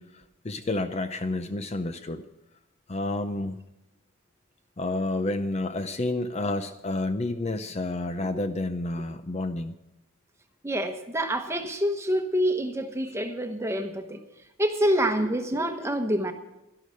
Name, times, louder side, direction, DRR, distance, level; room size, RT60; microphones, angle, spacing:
voice 1, 0.0-2.2 2.9-3.6 4.8-9.7, left 2 dB, 30° left, 9 dB, 0.6 m, -30 dB
voice 2, 10.6-14.2 14.6-16.3, equal, 15° right, 6 dB, 1.1 m, -26 dB
12.0 x 12.0 x 6.4 m, 0.94 s
head